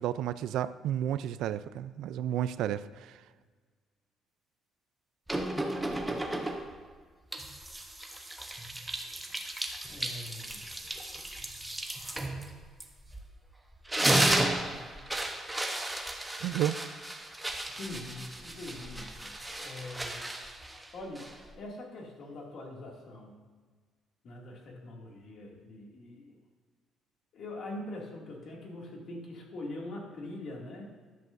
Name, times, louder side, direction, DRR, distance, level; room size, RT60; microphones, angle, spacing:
voice 1, 0.0-3.2 16.4-16.8, right 11 dB, 75° right, 14 dB, 0.4 m, -32 dB
sound 1, 5.3-6.8 7.3-13.4 13.7-21.5, right 1 dB, 5° right, 0.9 m, -34 dB
voice 2, 9.9-10.7 17.7-20.3 20.9-23.4 24.2-26.4 27.3-30.9, left 1 dB, 50° left, -1 dB, 2.3 m, -43 dB
13.5 x 11.0 x 2.6 m, 1.5 s
cardioid pair, 150°, 0 cm